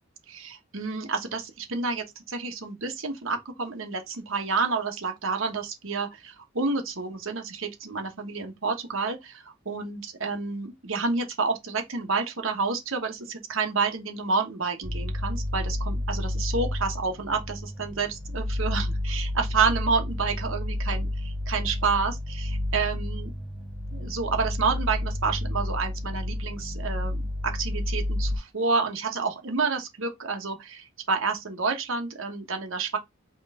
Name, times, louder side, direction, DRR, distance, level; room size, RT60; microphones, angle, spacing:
voice 1, 0.3-23.3 23.9-33.0, right 4 dB, 75° right, 1.2 m, -29 dB
sound 1, 14.8-28.4, left 1 dB, 10° right, 1.1 m, -30 dB
4.4 x 3.1 x 3.6 m
head